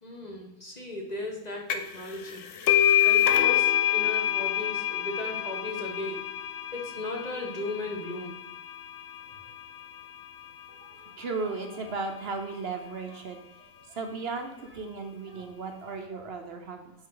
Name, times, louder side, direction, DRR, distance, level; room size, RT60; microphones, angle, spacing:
voice 1, 0.0-2.5 3.0-6.3 6.7-8.4, left 2 dB, 30° left, 0 dB, 1.1 m, -36 dB
sound 1, 1.7-2.0 2.3-9.6, left 11 dB, 65° left, 0.9 m, -26 dB
voice 2, 10.7-16.9, right 4 dB, 50° right, 4 dB, 0.9 m, -36 dB
9.8 x 4.4 x 3.8 m, 0.94 s
omnidirectional pair, 1.5 m